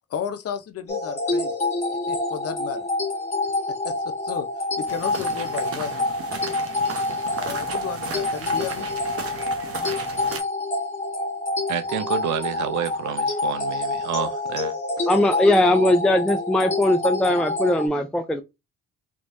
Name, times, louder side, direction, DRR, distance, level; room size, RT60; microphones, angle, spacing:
voice 1, 0.1-1.5 2.1-2.9 3.8-6.1 7.4-8.9 14.2-14.5, left 8 dB, 50° left, 0.7 m, -33 dB
sound 1, 0.9-17.9, left 2 dB, 20° left, 1.5 m, -27 dB
sound 2, 4.9-10.4, right 5 dB, 50° right, 0.9 m, -35 dB
voice 2, 11.7-14.7, right 10 dB, 75° right, 0.6 m, -29 dB
voice 3, 15.1-18.4, left 1 dB, 5° left, 0.3 m, -20 dB
3.4 x 3.0 x 2.6 m
cardioid pair, 90°, 30 cm